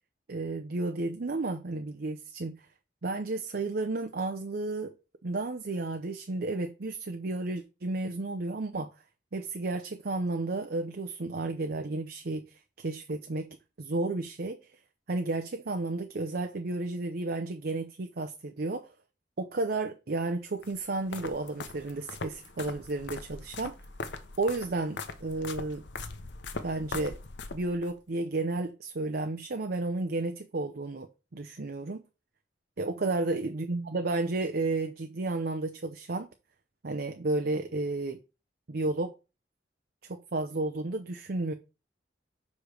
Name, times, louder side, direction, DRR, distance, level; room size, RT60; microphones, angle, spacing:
voice 1, 0.3-2.6 3.0-4.9 5.2-8.9 9.3-12.5 12.8-13.5 13.8-14.6 15.1-18.9 19.4-23.7 24.4-25.8 26.6-27.2 27.5-32.0 32.8-36.3 36.8-38.2 38.7-39.1 40.1-41.5, right 2 dB, 60° right, 0.7 m, -32 dB
sound 1, 20.6-27.9, left 3 dB, 75° left, 1.0 m, -41 dB
5.2 x 5.0 x 6.5 m
head